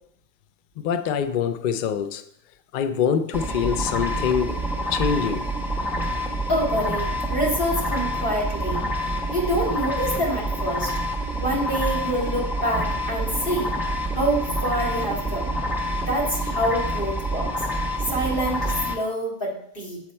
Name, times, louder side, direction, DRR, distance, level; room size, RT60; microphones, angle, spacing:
voice 1, 0.8-2.2 2.7-4.6 4.9-5.5, left 7 dB, 70° left, 0.5 m, -24 dB
sound 1, 3.3-19.0, equal, ahead, 0.6 m, -27 dB
voice 2, 6.5-8.8 9.3-10.9 11.4-13.7 14.1-15.5 15.9-17.7 18.1-20.0, equal, 40° left, 2.1 m, -26 dB
8.0 x 4.2 x 4.3 m
omnidirectional pair, 1.4 m